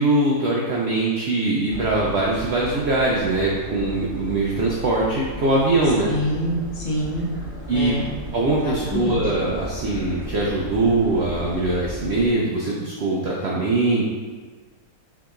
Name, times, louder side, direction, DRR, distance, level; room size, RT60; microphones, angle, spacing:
voice 1, 0.0-6.1 7.7-8.0 8.3-14.1, right 2 dB, 65° right, -4 dB, 0.6 m, -22 dB
sound 1, 1.7-12.3, right 1 dB, 5° left, 1.0 m, -36 dB
voice 2, 6.1-7.3 7.7-8.2 8.6-9.2, equal, 65° left, -5 dB, 1.4 m, -26 dB
5.8 x 2.8 x 2.4 m, 1.4 s
omnidirectional pair, 1.6 m